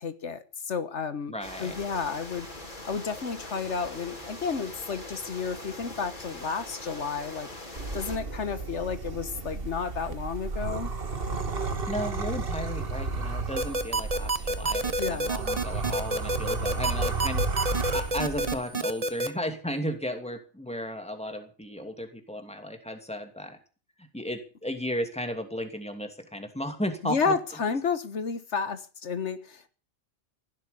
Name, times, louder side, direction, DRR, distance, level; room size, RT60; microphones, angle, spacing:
voice 1, 0.0-10.9 15.0-15.3 27.0-29.7, left 5 dB, 80° left, 12 dB, 1.6 m, -32 dB
voice 2, 1.3-1.8 11.9-23.6 24.0-27.4, equal, 5° left, 6 dB, 2.7 m, -34 dB
sound 1, 1.4-8.2, left 1 dB, 45° left, 4.1 m, -42 dB
sound 2, 7.8-18.6, right 3 dB, 55° right, 1.9 m, -33 dB
sound 3, 13.6-19.3, right 2 dB, 35° right, 1.2 m, -27 dB
15.5 x 12.5 x 6.9 m, 0.37 s
omnidirectional pair, 1.2 m